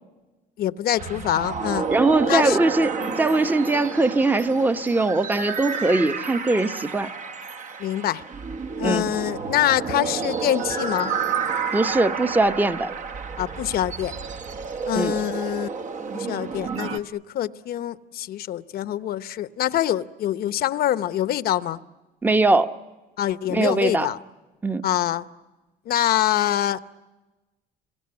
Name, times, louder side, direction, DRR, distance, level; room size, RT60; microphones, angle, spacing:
voice 1, 0.6-1.9 2.2-2.6 3.0-3.2 7.8-8.2 8.8-11.1 13.4-14.1 14.9-15.7 16.1-21.8 23.2-24.2 24.8-25.2 25.9-26.8, left 12 dB, 65° left, 0.8 m, -25 dB
sound 1, 1.0-17.0, right 5 dB, 45° right, 1.0 m, -30 dB
voice 2, 1.9-7.1 8.8-9.0 11.7-12.9 14.9-15.1 22.2-22.7 23.5-24.1 24.6-24.8, right 2 dB, 10° right, 0.8 m, -21 dB
27.0 x 22.5 x 9.6 m
cardioid pair, 110°, 17 cm